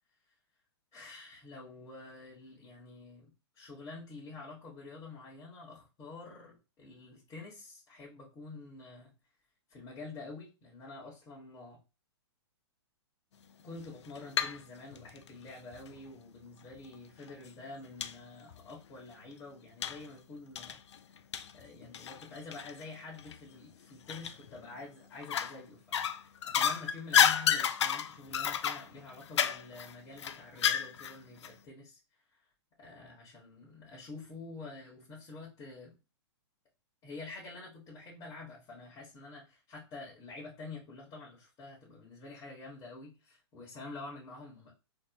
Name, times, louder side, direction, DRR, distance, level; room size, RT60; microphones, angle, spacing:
voice 1, 0.9-9.1 9.7-11.8 13.6-20.8 21.5-26.0 26.4-32.0 32.8-35.9 37.0-44.7, left 3 dB, 25° left, -6 dB, 1.3 m, -48 dB
sound 1, 13.8-14.6 14.9-16.0 16.7-16.8 17.3-17.4 18.0-18.1 18.5-18.6 19.8-20.1 20.6-22.8 23.2-23.3 24.1-24.6 25.2-25.6 25.9-31.2 31.4-31.5, left 8 dB, 85° left, 0.4 m, -30 dB
3.9 x 2.9 x 2.3 m, 0.30 s
hypercardioid pair, 140°, 14 cm